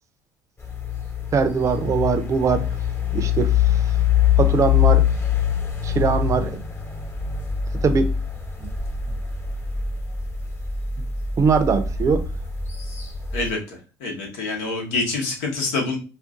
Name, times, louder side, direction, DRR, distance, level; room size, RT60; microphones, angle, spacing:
sound 1, 0.6-13.5, left 8 dB, 30° left, 1.0 m, -24 dB
voice 1, 1.3-2.7 3.1-4.0 4.4-5.1 5.8-6.6 7.8-8.1 8.6-8.7 11.4-12.2, right 5 dB, 40° right, 0.5 m, -21 dB
voice 2, 13.3-16.0, left 3 dB, 85° left, 1.0 m, -26 dB
2.5 x 2.2 x 3.6 m
supercardioid pair, 75°, 8 cm